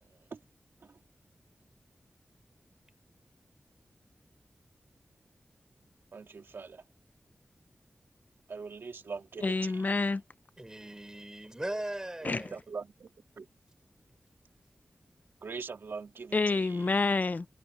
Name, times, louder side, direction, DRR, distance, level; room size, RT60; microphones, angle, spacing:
voice 1, 0.1-0.4 0.8-1.0 6.1-6.8 8.5-9.8 12.2-13.1 13.4-13.5 15.4-16.8, right 5 dB, 85° right, 2.1 m, -42 dB
voice 2, 9.4-10.2 12.2-12.4 16.3-17.5, left 3 dB, 50° left, 0.7 m, -28 dB
voice 3, 10.6-12.6, right 1 dB, 15° right, 4.4 m, -39 dB
wide cardioid pair, 75°, 4 cm